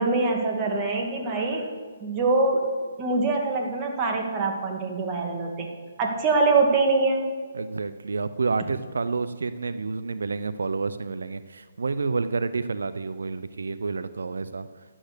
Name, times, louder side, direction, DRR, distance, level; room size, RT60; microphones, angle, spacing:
voice 1, 0.0-1.7 2.0-2.7 3.0-5.7 6.0-7.3, right 3 dB, 20° right, 1 dB, 1.9 m, -24 dB
voice 2, 7.5-14.7, right 4 dB, 85° right, 13 dB, 0.5 m, -29 dB
11.5 x 8.6 x 6.7 m, 1.5 s
hypercardioid pair, 155°, 0 cm